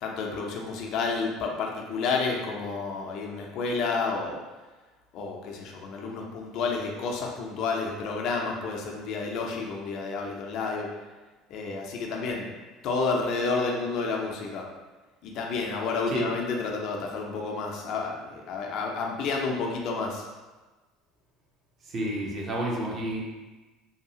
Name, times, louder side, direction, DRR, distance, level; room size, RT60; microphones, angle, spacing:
voice 1, 0.0-4.4 5.1-10.9 11.5-12.5 12.8-14.7 15.2-20.3, left 4 dB, 60° left, 0 dB, 0.5 m, -30 dB
voice 2, 21.8-23.2, right 1 dB, 45° right, -2 dB, 0.8 m, -30 dB
2.8 x 2.3 x 2.7 m, 1.2 s
hypercardioid pair, 70°, 0 cm